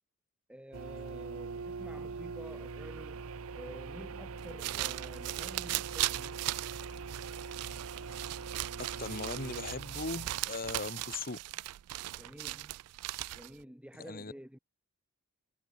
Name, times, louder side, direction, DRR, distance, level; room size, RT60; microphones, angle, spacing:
voice 1, 0.5-6.6 12.1-12.8 13.3-14.6, equal, 5° right, 2.8 m, -50 dB
sound 1, 0.7-10.4, right 4 dB, 65° right, 0.7 m, -43 dB
sound 2, 4.4-13.6, right 17 dB, 85° right, 0.3 m, -38 dB
voice 2, 8.8-11.4 14.1-14.3, left 3 dB, 45° left, 2.4 m, -39 dB
head